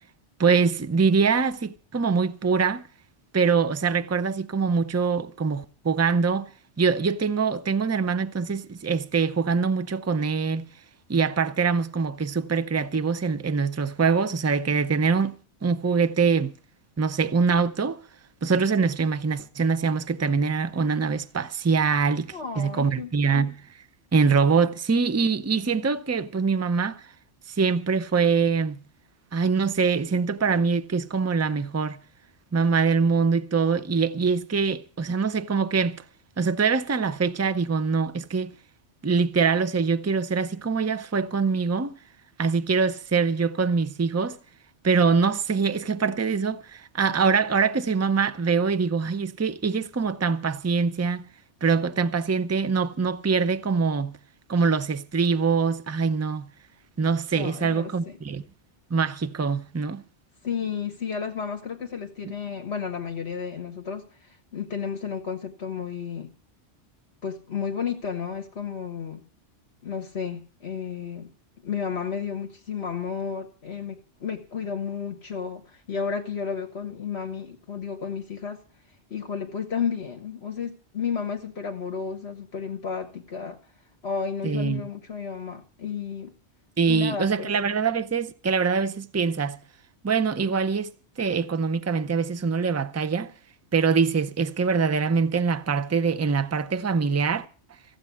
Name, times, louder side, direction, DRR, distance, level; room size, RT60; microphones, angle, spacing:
voice 1, 0.4-2.9 3.3-6.5 6.8-10.6 11.1-15.3 15.6-16.5 17.0-18.0 18.4-23.5 24.1-27.1 27.5-28.8 29.3-32.0 32.5-36.0 36.4-38.5 39.0-41.9 42.4-44.4 44.8-51.3 51.6-54.2 54.5-56.5 57.0-58.4 58.9-60.0 84.4-84.8 86.8-89.6 90.0-90.9 91.2-93.3 93.7-97.5, right 5 dB, 20° right, 0.4 m, -24 dB
voice 2, 22.3-23.5 57.3-58.2 60.4-66.3 67.2-69.2 69.8-71.3 71.6-78.6 79.1-83.6 84.0-86.3 86.9-87.5, left 6 dB, 65° left, 1.6 m, -32 dB
15.5 x 8.0 x 8.3 m
omnidirectional pair, 1.2 m